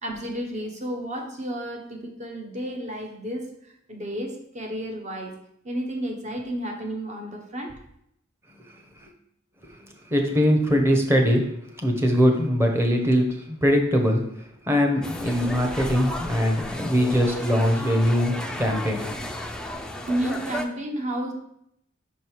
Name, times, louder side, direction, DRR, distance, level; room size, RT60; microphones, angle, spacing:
voice 1, 0.0-5.3 5.6-7.7 20.1-21.3, right 1 dB, 35° right, 2 dB, 1.2 m, -31 dB
voice 2, 10.1-11.5 11.8-14.2 14.7-19.0, equal, 10° right, 2 dB, 1.1 m, -21 dB
sound 1, 15.0-20.6, left 1 dB, 5° left, 0.5 m, -33 dB
5.8 x 5.3 x 4.7 m, 0.74 s
head